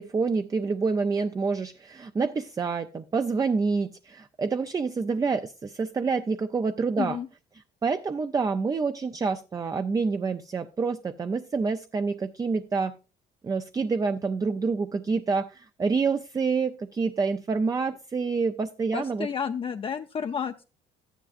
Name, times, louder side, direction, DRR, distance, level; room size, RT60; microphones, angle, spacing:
voice 1, 0.0-7.2 7.8-13.0 13.4-19.3, right 4 dB, 20° right, 0.5 m, -27 dB
voice 2, 7.0-7.3 18.9-20.6, left 7 dB, 35° left, 0.5 m, -31 dB
13.5 x 10.0 x 2.5 m
cardioid pair, 110°, 17 cm